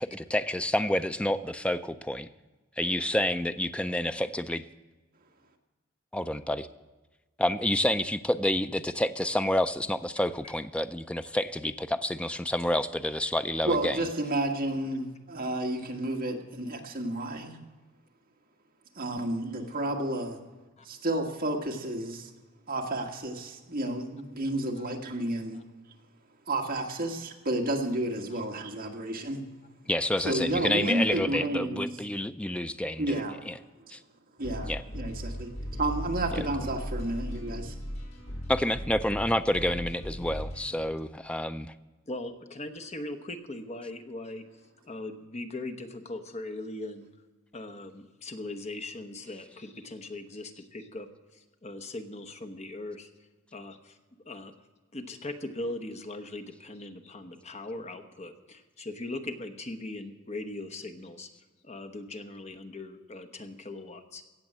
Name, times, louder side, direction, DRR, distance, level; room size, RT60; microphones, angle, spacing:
voice 1, 0.0-2.3 2.8-4.6 6.1-6.7 7.4-14.0 29.9-33.2 33.5-33.6 33.9-34.0 34.7-34.8 38.5-41.7, left 1 dB, 5° left, 11 dB, 0.4 m, -29 dB
voice 2, 13.6-17.6 19.0-20.4 20.8-22.3 22.7-25.6 26.5-29.5 30.2-31.9 33.0-33.4 34.4-37.8, right 1 dB, 45° right, 2 dB, 1.7 m, -31 dB
sound 1, 34.4-40.6, equal, 80° left, 4.4 m, -37 dB
voice 3, 42.1-44.4 44.8-47.1 47.5-53.1 53.5-54.0 54.2-54.5 54.9-61.3 61.6-64.2, left 2 dB, 35° left, 7 dB, 1.0 m, -40 dB
17.0 x 7.0 x 7.5 m, 1.2 s
head